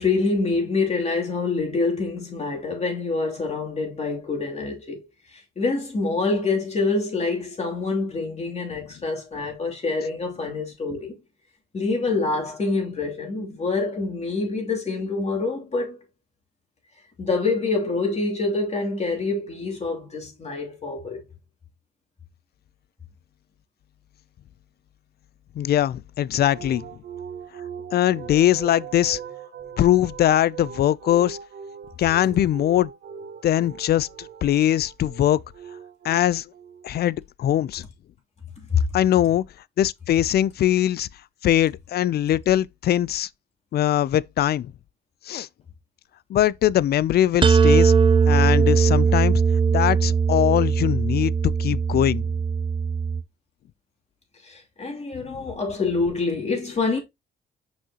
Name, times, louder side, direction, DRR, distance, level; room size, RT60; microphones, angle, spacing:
voice 1, 0.0-5.0 5.6-11.2 11.7-16.0 17.2-21.2 38.7-38.9 54.4-57.0, left 3 dB, 35° left, 2.8 m, -26 dB
voice 2, 25.6-26.9 27.9-29.2 29.8-31.4 32.0-32.9 33.4-35.4 36.0-36.5 36.8-37.8 38.9-39.4 39.8-41.1 41.4-43.3 43.7-44.7 45.3-45.5 46.3-47.9 48.3-49.4 49.7-52.3, left 12 dB, 55° left, 0.4 m, -21 dB
sound 1, 26.4-37.1, right 7 dB, 60° right, 1.2 m, -40 dB
sound 2, 47.4-53.2, right 6 dB, 25° right, 0.5 m, -19 dB
6.1 x 5.6 x 2.9 m
cardioid pair, 90°, 20 cm